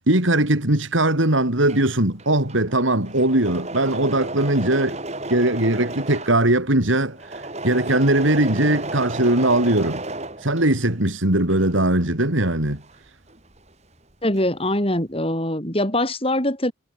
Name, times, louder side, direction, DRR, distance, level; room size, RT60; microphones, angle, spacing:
voice 1, 0.1-5.0 5.3-7.2 7.6-10.0 10.4-12.8, right 1 dB, 80° right, 4.1 m, -20 dB
Engine / Mechanisms, 1.4-11.0 11.4-13.7 14.0-14.7, right 2 dB, 35° right, 5.2 m, -33 dB
voice 2, 14.2-16.7, left 1 dB, 30° left, 5.1 m, -23 dB
head